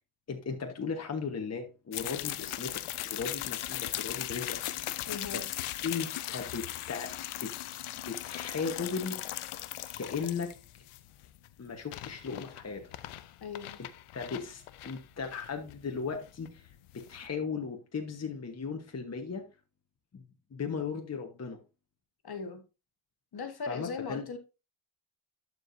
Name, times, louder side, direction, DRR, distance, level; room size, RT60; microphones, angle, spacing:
voice 1, 0.3-4.9 5.3-5.6 5.8-7.1 7.4-7.5 8.1-9.2 10.0-10.5 11.6-12.8 14.1-16.7 16.9-19.4 20.1-20.2 20.5-21.6 23.7-24.3, left 5 dB, 30° left, 1.2 m, -37 dB
sound 1, 1.9-17.3, left 14 dB, 80° left, 0.7 m, -39 dB
voice 2, 5.1-5.5 13.4-13.8 22.2-22.6 23.3-24.4, left 5 dB, 50° left, 1.5 m, -38 dB
12.0 x 4.9 x 2.6 m
cardioid pair, 70°, 49 cm